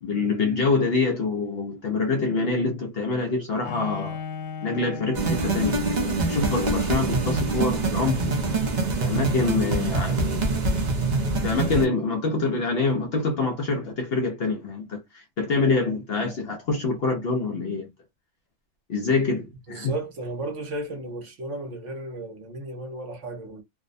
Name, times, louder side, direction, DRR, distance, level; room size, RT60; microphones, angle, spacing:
voice 1, 0.0-4.2 4.6-8.3 9.0-10.5 11.4-17.9 18.9-19.9, left 3 dB, 60° left, 0.7 m, -26 dB
Bowed string instrument, 3.6-6.6, left 6 dB, 90° left, 1.0 m, -37 dB
sound 1, 5.1-11.8, right 3 dB, 45° right, 0.6 m, -25 dB
voice 2, 19.7-23.6, right 2 dB, 65° right, 1.1 m, -34 dB
2.6 x 2.0 x 2.5 m
omnidirectional pair, 1.4 m